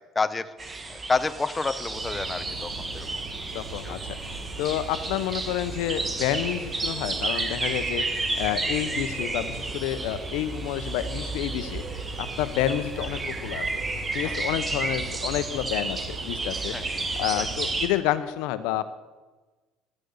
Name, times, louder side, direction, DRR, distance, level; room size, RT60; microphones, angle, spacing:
voice 1, 0.2-0.7 1.1-3.1 3.8-3.9 14.2-14.4 16.7-16.9 17.4-17.5, left 4 dB, 20° left, 13 dB, 0.7 m, -29 dB
sound 1, 0.6-17.9, right 3 dB, 20° right, 1.4 m, -32 dB
sound 2, 1.9-17.8, right 3 dB, 50° right, 2.4 m, -39 dB
voice 2, 3.5-4.0 4.6-8.0 8.4-11.8 12.2-13.7 14.1-16.7 17.2-18.9, left 12 dB, 85° left, 13 dB, 0.7 m, -29 dB
13.0 x 6.5 x 7.2 m, 1.2 s
cardioid pair, 115°, 0 cm